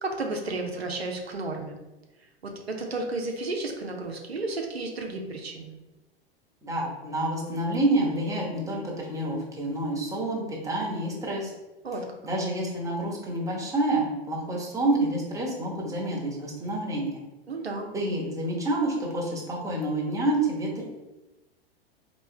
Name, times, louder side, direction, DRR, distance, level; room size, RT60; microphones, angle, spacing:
voice 1, 0.0-1.8 2.4-5.8 11.8-12.1 17.5-17.9, right 2 dB, 85° right, 3 dB, 0.6 m, -32 dB
voice 2, 6.6-11.5 12.2-17.2 17.9-20.8, right 1 dB, 10° right, -3 dB, 1.2 m, -28 dB
4.2 x 3.0 x 3.3 m, 1.1 s
figure-of-eight pair, 90°, 30 cm